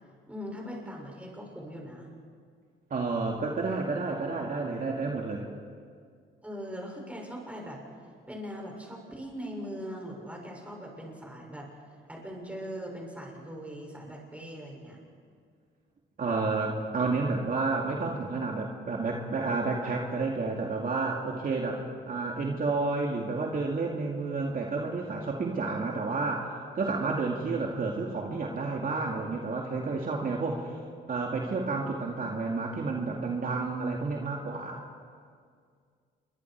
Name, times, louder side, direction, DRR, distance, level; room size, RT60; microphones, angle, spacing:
voice 1, 0.3-2.1 6.4-7.8 8.3-11.7 12.1-15.0, equal, 5° right, -1 dB, 6.8 m, -40 dB
voice 2, 2.9-5.5 16.2-21.8 22.1-30.7 31.1-34.8, right 3 dB, 45° right, -1 dB, 2.5 m, -30 dB
28.0 x 23.5 x 4.8 m, 2.1 s
cardioid pair, 90°, 20 cm